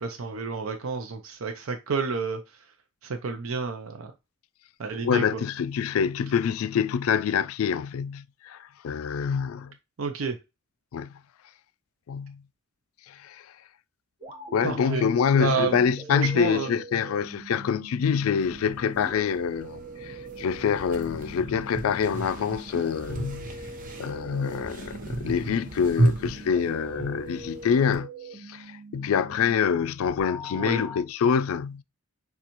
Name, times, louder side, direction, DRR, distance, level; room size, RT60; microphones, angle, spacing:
voice 1, 0.0-2.4 3.0-4.1 4.8-5.4 10.0-10.3 14.6-15.0 15.4-15.8 16.1-16.8 30.6-30.8, right 5 dB, 80° right, 0.6 m, -30 dB
voice 2, 5.0-9.7 10.9-11.1 12.1-12.4 13.1-13.4 14.5-23.5 24.0-28.1 28.5-31.8, left 7 dB, 85° left, 0.3 m, -26 dB
sound 1, 14.2-31.0, right 2 dB, 25° right, 1.1 m, -43 dB
High Pitched Shriek, 18.4-28.0, right 1 dB, 40° right, 0.8 m, -33 dB
6.8 x 2.3 x 2.9 m
head